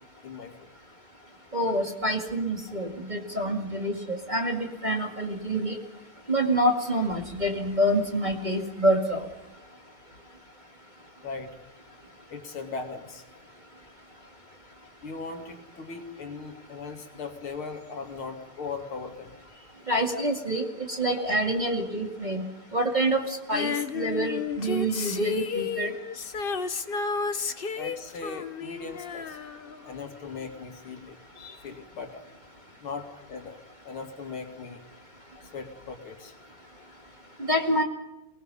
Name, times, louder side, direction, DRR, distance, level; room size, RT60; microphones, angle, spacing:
voice 1, 0.2-0.7 11.2-11.5 12.3-13.2 15.0-19.7 20.1-20.2 27.7-29.4 29.8-32.2 32.8-33.6 33.8-34.8 35.4-36.3, left 4 dB, 70° left, 4 dB, 3.3 m, -39 dB
voice 2, 1.5-5.8 6.3-9.3 19.9-22.5 22.7-25.9 37.5-37.8, right 1 dB, 20° right, 1 dB, 2.1 m, -27 dB
Female singing, 23.5-30.1 30.4-30.5, left 5 dB, 50° left, 0.6 m, -32 dB
28.5 x 19.5 x 5.5 m, 0.96 s
omnidirectional pair, 2.4 m